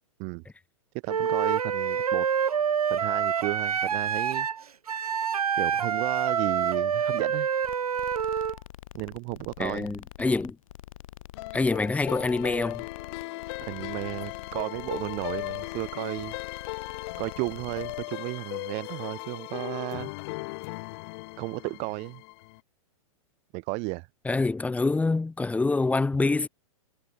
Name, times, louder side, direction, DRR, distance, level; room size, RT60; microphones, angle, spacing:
voice 1, 1.0-2.3 2.9-4.5 5.6-7.5 8.9-9.9 13.6-16.4 17.2-20.1 21.4-22.2 23.5-24.1, right 32 dB, 35° right, 0.4 m, -33 dB
Wind instrument woodwind instrument, 1.1-8.6, right 7 dB, 90° right, 1.1 m, -27 dB
sound 1, 7.6-18.1, left 13 dB, 65° left, 1.8 m, -46 dB
voice 2, 9.6-10.6 11.5-12.8 24.2-26.5, left 3 dB, 5° left, 0.9 m, -26 dB
sound 2, 11.3-22.6, left 25 dB, 45° left, 0.5 m, -38 dB
hypercardioid pair, 115°, 18 cm